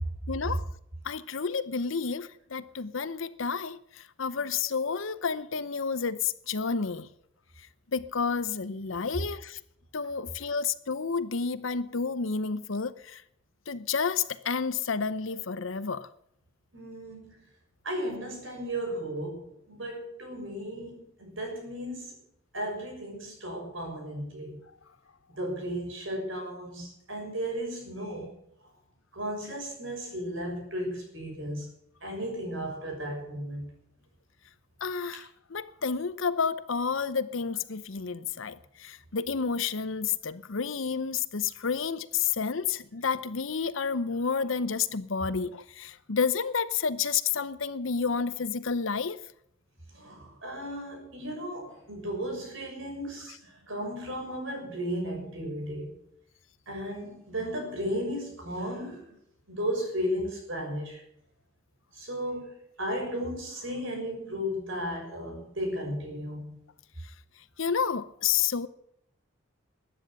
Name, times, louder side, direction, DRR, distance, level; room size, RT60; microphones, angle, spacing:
voice 1, 0.3-0.6 1.0-7.1 7.9-9.6 9.9-13.2 13.7-16.1 34.8-49.2 67.6-68.7, left 5 dB, 70° left, 0.8 m, -30 dB
voice 2, 16.7-17.4 17.8-22.2 22.5-24.6 25.3-28.3 29.1-31.7 32.0-33.7 49.9-56.0 56.7-59.1 59.5-61.0 61.9-66.6, equal, 70° right, 6.4 m, -35 dB
13.0 x 9.9 x 8.9 m
head